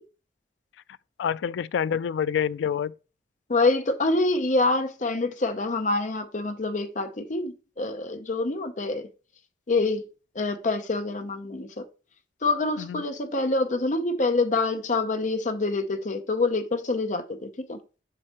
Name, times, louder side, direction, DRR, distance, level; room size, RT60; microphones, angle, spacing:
voice 1, 1.2-2.9 12.8-13.0, left 8 dB, 85° left, 0.3 m, -27 dB
voice 2, 3.5-9.1 9.7-10.1 10.3-11.9 12.4-17.8, left 3 dB, 45° left, 0.7 m, -26 dB
7.5 x 5.5 x 3.0 m
head